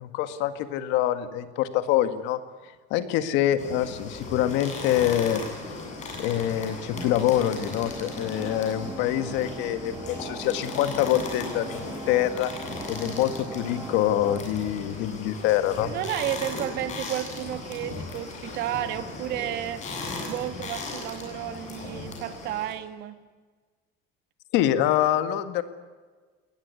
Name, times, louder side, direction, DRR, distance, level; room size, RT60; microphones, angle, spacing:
voice 1, 0.0-2.4 2.9-5.4 6.2-12.5 12.9-15.9 24.5-25.6, left 12 dB, 90° left, 11 dB, 1.9 m, -25 dB
sound 1, 3.6-22.7, left 3 dB, 40° left, 8.0 m, -37 dB
sound 2, 6.9-14.4, right 3 dB, 15° right, 1.1 m, -40 dB
voice 2, 15.8-19.9 20.3-23.2, right 12 dB, 65° right, 10 dB, 2.0 m, -32 dB
21.5 x 19.0 x 9.8 m, 1.4 s
cardioid pair, 160°, 18 cm